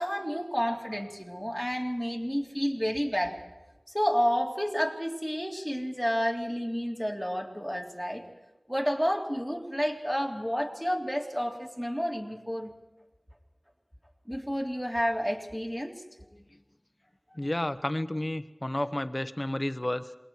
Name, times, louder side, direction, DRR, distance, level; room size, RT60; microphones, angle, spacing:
voice 1, 0.0-3.4 3.9-8.3 8.7-12.7 14.3-16.0, equal, 5° right, 0 dB, 3.5 m, -30 dB
voice 2, 17.3-20.1, left 1 dB, 35° left, 10 dB, 1.2 m, -31 dB
28.0 x 22.5 x 4.7 m, 1.1 s
wide cardioid pair, 40°, 0 cm